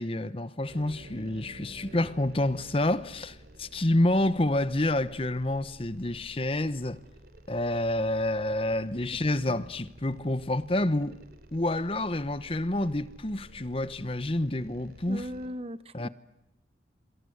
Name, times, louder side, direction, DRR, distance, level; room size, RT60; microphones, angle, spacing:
voice 1, 0.0-7.0 7.5-11.2 11.5-15.3 15.9-16.1, left 1 dB, 30° left, 1.0 m, -28 dB
sound 1, 0.7-15.5, right 1 dB, 55° right, 3.7 m, -51 dB
voice 2, 15.1-16.1, equal, 30° right, 1.0 m, -38 dB
28.0 x 26.0 x 8.0 m
head